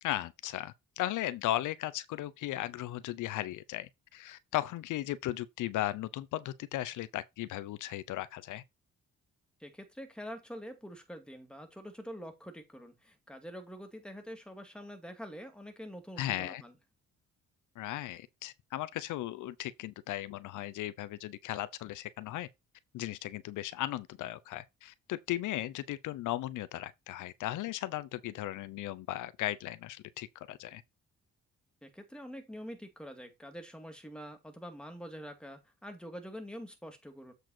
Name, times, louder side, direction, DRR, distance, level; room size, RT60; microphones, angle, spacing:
voice 1, 0.0-8.6 16.2-16.6 17.8-22.5 22.9-30.8, left 14 dB, 80° left, 0.7 m, -36 dB
voice 2, 9.6-16.7 31.8-37.3, equal, 5° left, 2.5 m, -46 dB
7.8 x 4.7 x 4.4 m
cardioid pair, 90°, 30 cm